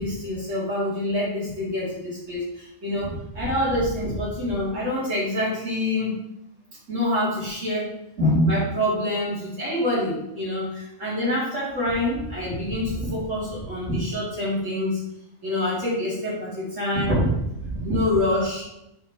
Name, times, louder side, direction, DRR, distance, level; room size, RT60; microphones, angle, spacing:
voice 1, 0.0-6.2 6.9-7.9 8.2-15.0 15.4-17.3 17.6-18.6, left 1 dB, 65° right, -10 dB, 2.8 m, -25 dB
11.0 x 3.8 x 2.9 m, 0.85 s
omnidirectional pair, 1.4 m